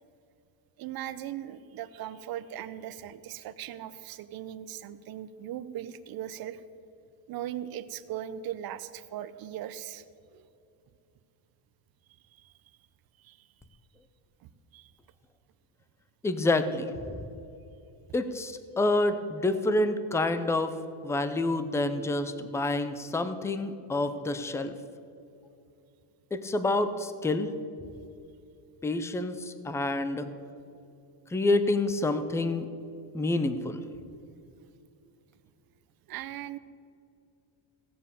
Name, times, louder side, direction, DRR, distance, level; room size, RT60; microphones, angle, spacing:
voice 1, 0.8-6.6 7.3-10.0 10.3-10.5 12.3-12.5 13.2-13.5 14.4-14.9 36.1-36.6, right 11 dB, 50° right, 13 dB, 0.7 m, -39 dB
voice 2, 16.2-16.9 18.1-20.7 21.0-24.8 26.3-27.5 28.8-30.3 31.3-32.7 33.1-33.8, left 2 dB, 5° left, 11 dB, 0.4 m, -28 dB
16.0 x 7.7 x 6.7 m, 2.6 s
cardioid pair, 145°, 48 cm